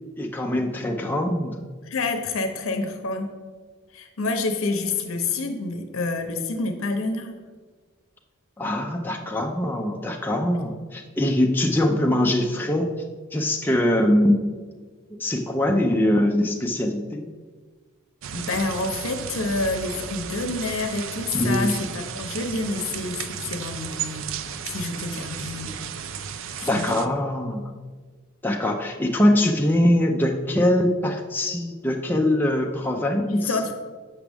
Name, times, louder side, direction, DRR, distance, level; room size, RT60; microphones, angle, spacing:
voice 1, 0.2-1.6 8.6-12.9 13.3-14.4 15.2-17.3 21.3-21.8 26.6-27.7 28.4-33.6, left 1 dB, 10° left, 1 dB, 0.4 m, -22 dB
voice 2, 1.8-3.3 3.9-7.3 18.3-24.3 24.7-25.7 26.7-27.0 33.2-33.7, left 3 dB, 80° left, 6 dB, 0.7 m, -28 dB
sound 1, 18.2-27.1, right 7 dB, 65° right, 0.4 m, -34 dB
7.2 x 5.9 x 3.4 m, 1.5 s
head